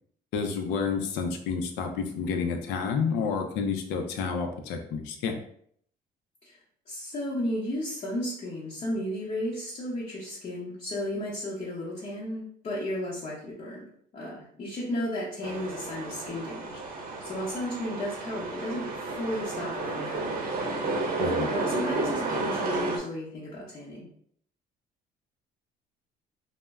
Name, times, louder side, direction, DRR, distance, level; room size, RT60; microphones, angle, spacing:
voice 1, 0.3-5.4 21.2-21.5, left 5 dB, 85° left, 5 dB, 0.5 m, -30 dB
voice 2, 6.9-13.8 14.1-20.5 21.4-24.1, left 1 dB, 40° left, -6 dB, 0.7 m, -34 dB
sound 1, 15.4-23.0, right 2 dB, 60° right, 0.6 m, -31 dB
2.1 x 2.1 x 3.4 m, 0.64 s
cardioid pair, 110°, 17 cm